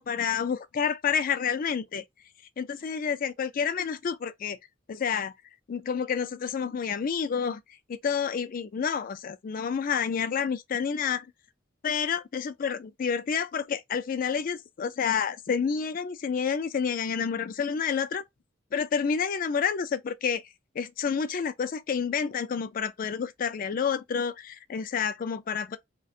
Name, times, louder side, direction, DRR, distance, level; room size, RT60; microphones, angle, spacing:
voice 1, 0.0-2.0 2.6-4.6 4.9-5.3 5.7-7.6 7.9-11.3 11.8-18.2 18.7-20.4 20.8-25.8, left 6 dB, 45° left, 0.3 m, -29 dB
2.4 x 2.2 x 2.6 m
head